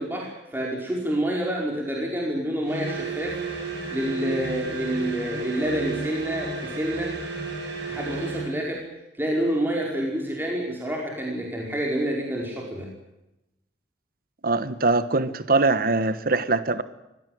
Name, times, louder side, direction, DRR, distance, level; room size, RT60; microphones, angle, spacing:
voice 1, 0.0-3.4 3.9-7.1 7.9-8.8 9.2-12.9, right 1 dB, 10° right, -1 dB, 4.8 m, -28 dB
sound 1, 2.7-8.6, right 3 dB, 75° right, 6.9 m, -32 dB
voice 2, 14.4-16.8, right 3 dB, 55° right, 13 dB, 1.2 m, -22 dB
24.0 x 17.0 x 9.4 m, 0.94 s
head